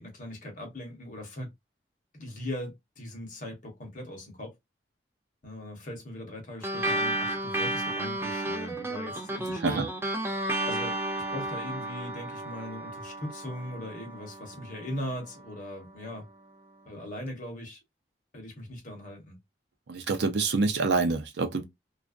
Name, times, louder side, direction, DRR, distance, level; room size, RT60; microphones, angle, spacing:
voice 1, 0.0-1.5 2.1-4.5 5.4-9.9 10.7-11.0 11.3-16.3 16.8-17.8 18.3-19.4, left 1 dB, 45° left, 1.0 m, -39 dB
sound 1, 6.6-15.5, right 1 dB, 15° right, 0.4 m, -33 dB
voice 2, 19.9-21.6, right 3 dB, 70° right, 0.5 m, -26 dB
2.4 x 2.2 x 2.4 m
head